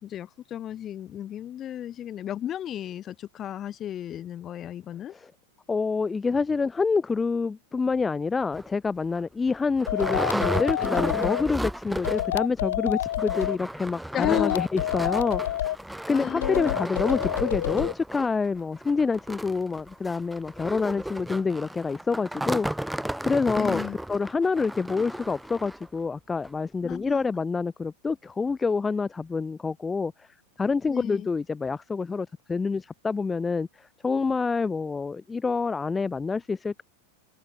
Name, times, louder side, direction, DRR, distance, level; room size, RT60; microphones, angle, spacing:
voice 1, 0.0-5.1 14.1-14.6 16.1-16.8 23.5-24.0 26.8-27.3 30.9-31.3, left 11 dB, 30° left, 4.2 m, -33 dB
voice 2, 5.7-15.7 16.1-23.0 23.3-23.8 24.1-30.3 30.6-36.8, left 4 dB, 15° left, 0.7 m, -27 dB
sound 1, 8.5-8.7 9.2-9.3 9.5-12.4 12.7-12.8 13.1-25.9 26.4-26.5 26.9-27.0, right 1 dB, 5° right, 1.6 m, -34 dB
sound 2, 9.9-11.4 12.0-13.6 14.2-15.8 16.4-17.9, left 12 dB, 60° left, 0.9 m, -28 dB
figure-of-eight pair, 90°, 0 cm